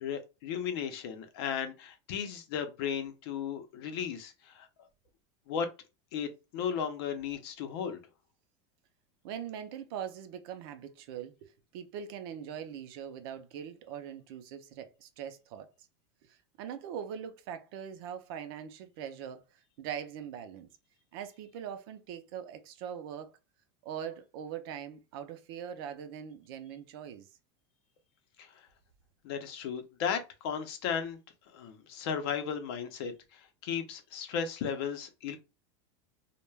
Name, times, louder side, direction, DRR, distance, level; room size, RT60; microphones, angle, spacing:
voice 1, 0.0-4.7 5.5-5.7 6.1-8.0 28.4-28.5 29.2-31.2 31.5-35.4, left 7 dB, 60° left, 0.6 m, -35 dB
voice 2, 9.2-15.9 16.2-20.7 21.1-23.3 23.8-27.3, right 8 dB, 55° right, 0.5 m, -42 dB
2.2 x 2.1 x 3.2 m
supercardioid pair, 165°, 15 cm